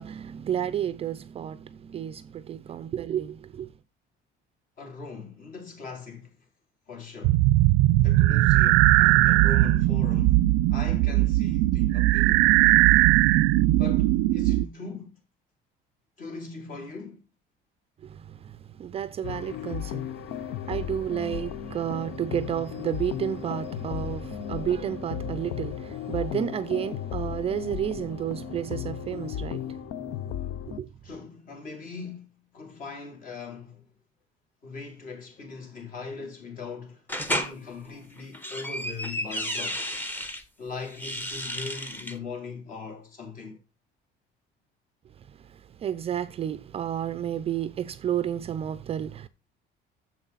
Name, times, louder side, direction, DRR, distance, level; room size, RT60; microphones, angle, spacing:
voice 1, 0.0-3.7 18.0-29.8 30.7-30.9 45.5-49.3, right 10 dB, 30° right, 0.5 m, -31 dB
voice 2, 4.8-6.3 6.9-7.4 8.0-10.4 10.7-12.5 13.8-15.2 16.2-17.2 19.6-19.7 31.0-33.9 34.6-37.0 37.3-39.9 40.6-43.6, left 4 dB, 45° left, 3.5 m, -40 dB
sound 1, 7.2-14.7, right 17 dB, 90° right, 0.4 m, -19 dB
sound 2, 19.2-30.8, left 11 dB, 60° left, 0.6 m, -35 dB
sound 3, 37.1-37.5 38.2-40.4 40.9-42.2, equal, 10° left, 1.1 m, -32 dB
10.0 x 7.5 x 4.0 m
cardioid pair, 165°, 19 cm